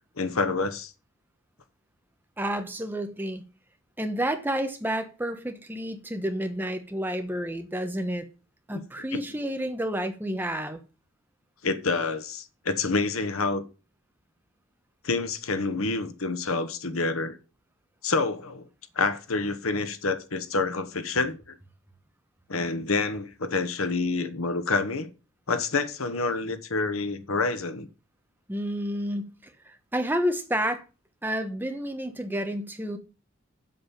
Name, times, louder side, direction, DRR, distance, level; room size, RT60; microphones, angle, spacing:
voice 1, 0.2-0.9 8.7-8.8 9.1-9.2 11.6-13.6 15.0-17.4 18.0-18.7 18.9-21.5 22.5-25.1 25.5-27.9, left 3 dB, 90° left, 1.2 m, -28 dB
voice 2, 2.4-3.4 4.0-8.3 8.7-10.8 28.5-30.8 31.2-33.0, equal, 10° right, 1.1 m, -30 dB
7.8 x 7.1 x 5.7 m
head